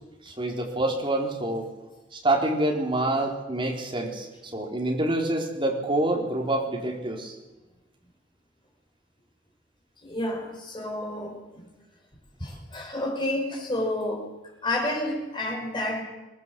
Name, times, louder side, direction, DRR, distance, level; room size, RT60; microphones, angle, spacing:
voice 1, 0.2-1.7 2.1-7.3, right 1 dB, 25° right, 0 dB, 4.1 m, -27 dB
voice 2, 10.0-11.6 12.4-14.3 14.6-16.0, left 1 dB, 25° left, 1 dB, 5.3 m, -30 dB
22.5 x 18.5 x 7.8 m, 1.1 s
head